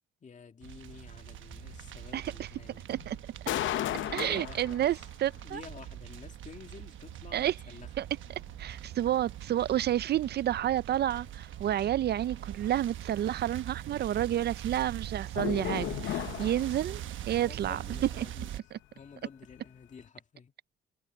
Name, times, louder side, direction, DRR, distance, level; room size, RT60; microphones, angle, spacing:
voice 1, 0.2-2.9 4.0-4.9 5.3-8.1 8.8-8.9 14.1-14.4 16.4-18.5 18.9-20.5, left 6 dB, 40° left, 2.1 m, -50 dB
sound 1, 0.6-18.6, right 12 dB, 75° right, 1.2 m, -43 dB
sound 2, 0.9-1.0 1.4-2.5 2.9-5.1 5.5-5.6 6.1-6.2 6.6-6.7 7.1-7.2 7.6-7.7 8.1-9.2 9.7-9.8 10.2-10.3 10.7-10.8 11.1-11.3 11.7-11.8 12.1-12.5 12.8-12.9 13.3-13.4 13.8-13.9 14.3-14.5 14.8-14.9 15.3-17.2 17.4-18.1 18.4-18.7 19.0-19.1 19.5-19.7, left 13 dB, 75° left, 0.8 m, -37 dB
voice 2, 4.1-5.6 7.3-7.5 8.0-8.1 8.6-17.0 17.3-17.8 18.2-18.3, right 11 dB, 55° right, 0.4 m, -30 dB
cardioid pair, 90°, 20 cm